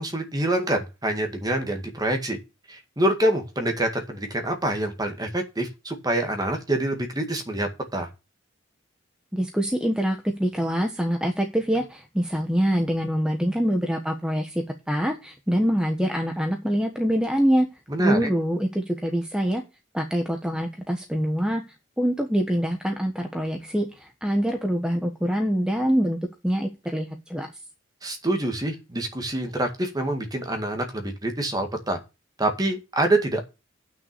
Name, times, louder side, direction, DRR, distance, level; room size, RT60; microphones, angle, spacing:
voice 1, 0.0-2.4 2.7-8.1 17.9-18.3 28.0-32.0 32.4-33.4, right 1 dB, 20° right, 5 dB, 2.0 m, -26 dB
voice 2, 9.3-17.7 18.0-19.6 19.9-21.6 22.0-26.2 26.4-27.5, equal, 5° right, 3 dB, 1.2 m, -25 dB
9.2 x 6.2 x 6.8 m, 0.26 s
head